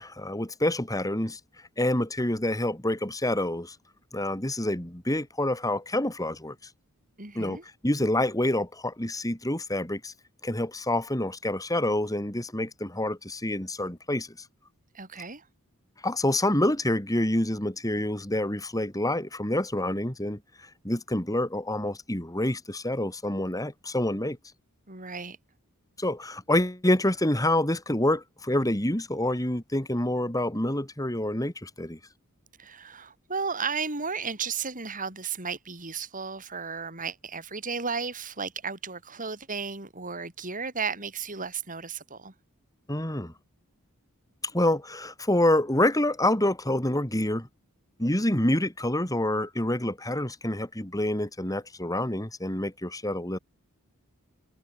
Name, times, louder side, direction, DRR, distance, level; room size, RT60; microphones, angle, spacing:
voice 1, 0.0-1.4 1.8-3.8 4.1-6.6 7.3-10.1 10.4-14.3 16.0-20.4 20.8-24.4 26.0-32.0 42.9-43.3 44.5-47.5 48.0-53.4, left 1 dB, 15° left, 4.0 m, -27 dB
voice 2, 7.2-7.6 14.9-15.4 24.9-25.4 32.6-42.3, right 5 dB, 35° right, 7.5 m, -34 dB
head